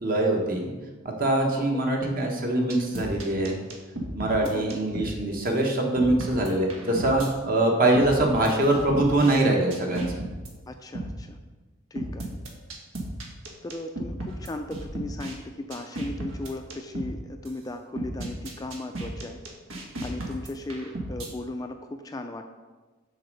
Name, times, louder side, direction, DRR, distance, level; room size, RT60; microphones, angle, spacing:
voice 1, 0.0-0.7 1.0-3.6 4.1-10.1, right 1 dB, 45° right, 1 dB, 1.2 m, -23 dB
sound 1, 2.7-5.1 5.5-5.6 6.0-7.3 8.0-9.3 9.7-10.5 10.9-11.1 12.0-15.3 15.7-17.1 17.5-17.6 18.0-21.3, right 1 dB, 85° right, 1.3 m, -34 dB
voice 2, 10.7-11.4 11.9-12.3 13.6-19.4 20.0-22.5, left 2 dB, 20° left, 5 dB, 0.3 m, -37 dB
6.7 x 4.0 x 6.5 m, 1.3 s
head